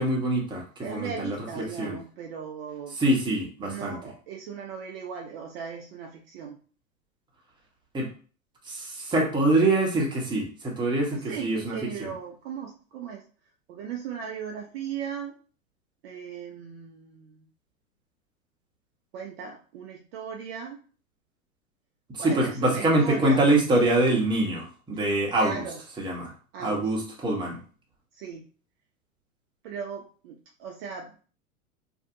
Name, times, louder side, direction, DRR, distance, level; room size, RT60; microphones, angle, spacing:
voice 1, 0.0-2.0 3.0-4.0 7.9-8.1 8.6-12.1 22.1-25.6 26.0-26.3 26.6-27.6, right 1 dB, 10° right, -1 dB, 0.8 m, -25 dB
voice 2, 0.8-3.0 3.6-6.6 11.1-13.2 13.7-15.4 16.0-17.5 19.1-20.8 22.2-23.4 25.4-25.8 26.5-26.9 28.1-28.5 29.6-31.2, right 7 dB, 45° right, 1 dB, 0.5 m, -37 dB
2.7 x 2.6 x 2.5 m, 0.39 s
hypercardioid pair, 105°, 43 cm